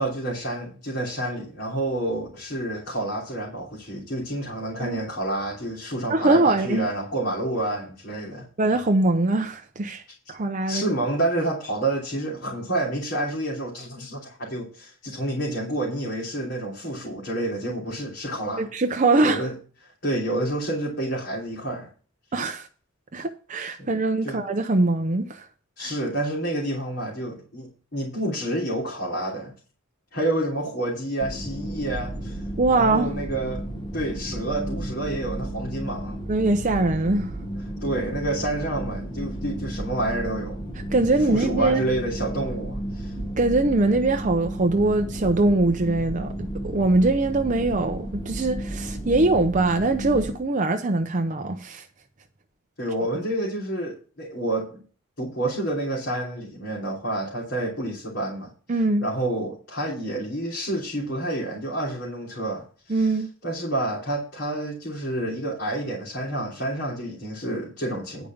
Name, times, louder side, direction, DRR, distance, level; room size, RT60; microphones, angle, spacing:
voice 1, 0.0-8.5 10.7-18.7 19.2-19.6 20.0-21.9 23.8-23.9 24.2-24.4 25.8-29.5 30.1-32.4 32.7-33.6 33.9-36.2 37.8-40.6 41.3-43.1 52.8-54.8 55.2-58.5 59.0-68.3, right 1 dB, 55° left, 3.1 m, -29 dB
voice 2, 6.1-6.9 8.6-10.0 10.3-10.9 18.6-19.5 22.3-22.7 23.1-25.5 25.8-25.9 32.6-33.1 36.3-37.3 40.9-41.8 43.4-51.8 58.7-59.1 62.9-63.3, right 2 dB, 35° right, 0.6 m, -22 dB
sound 1, 31.2-50.4, right 1 dB, 20° left, 1.3 m, -33 dB
10.0 x 5.0 x 7.1 m
head